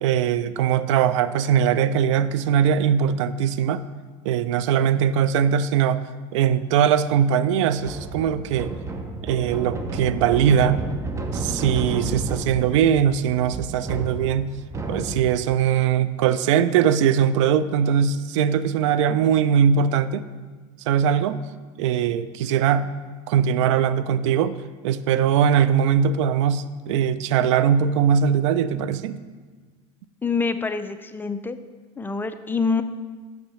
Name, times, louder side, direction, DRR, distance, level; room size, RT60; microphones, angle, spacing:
voice 1, 0.0-3.8 4.2-6.0 6.3-8.7 9.2-10.8 11.3-14.5 14.9-20.2 20.9-21.4 21.8-22.9 23.3-24.6 24.8-29.2, right 8 dB, 80° right, 15 dB, 0.4 m, -21 dB
sound 1, 7.8-15.5, right 2 dB, 20° right, 0.7 m, -31 dB
voice 2, 30.2-31.6 32.0-32.8, left 4 dB, 15° left, 10 dB, 0.4 m, -25 dB
6.5 x 5.9 x 6.9 m, 1.4 s
supercardioid pair, 105°, 15 cm